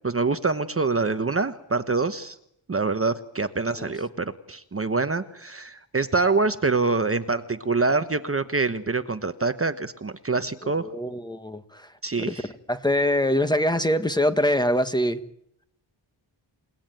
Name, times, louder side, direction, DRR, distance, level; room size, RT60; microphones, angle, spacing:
voice 1, 0.0-2.4 2.7-10.9 12.0-12.5, right 3 dB, 30° right, 9 dB, 1.1 m, -25 dB
voice 2, 10.6-11.9 12.2-12.4 12.7-15.2, left 1 dB, 10° left, 9 dB, 1.5 m, -24 dB
29.5 x 19.0 x 9.2 m, 0.75 s
wide cardioid pair, 120°, 48 cm